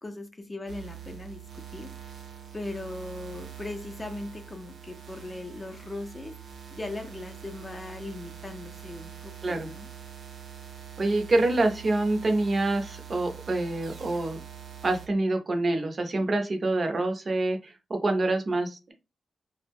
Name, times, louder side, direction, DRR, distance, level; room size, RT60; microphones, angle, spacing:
voice 1, 0.0-1.9 2.5-6.3 6.7-9.9, left 2 dB, 20° left, 5 dB, 0.5 m, -39 dB
sound 1, 0.7-15.1, right 9 dB, 80° right, 0.7 m, -44 dB
voice 2, 11.0-14.4 14.8-18.9, right 2 dB, 40° right, 5 dB, 0.6 m, -26 dB
2.2 x 2.1 x 3.4 m, 0.28 s
wide cardioid pair, 105°, 0 cm